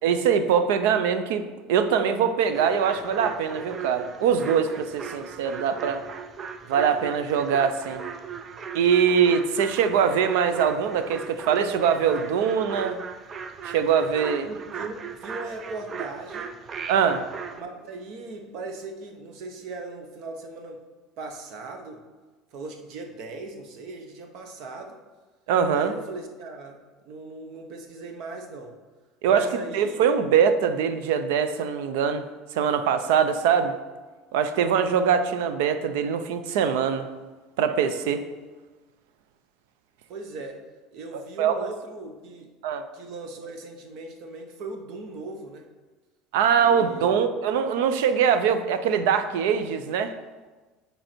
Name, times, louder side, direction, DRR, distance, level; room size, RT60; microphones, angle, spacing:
voice 1, 0.0-6.1 6.7-8.0 8.7-13.0 13.6-14.5 16.9-17.3 25.5-26.0 29.2-32.2 32.5-33.8 34.3-37.1 37.6-38.2 41.1-41.7 42.6-42.8 46.3-50.1, right 7 dB, 90° right, 10 dB, 0.5 m, -23 dB
sound 1, 2.5-17.6, right 6 dB, 30° right, 0.4 m, -38 dB
voice 2, 14.4-16.5 17.5-20.8 21.2-22.0 22.5-25.0 25.7-26.8 27.0-28.7 29.3-30.0 40.1-40.6 40.9-42.5 42.9-45.7 46.5-47.3, right 3 dB, 55° right, 5 dB, 0.9 m, -38 dB
7.8 x 4.6 x 4.4 m, 1.3 s
cardioid pair, 150°, 0 cm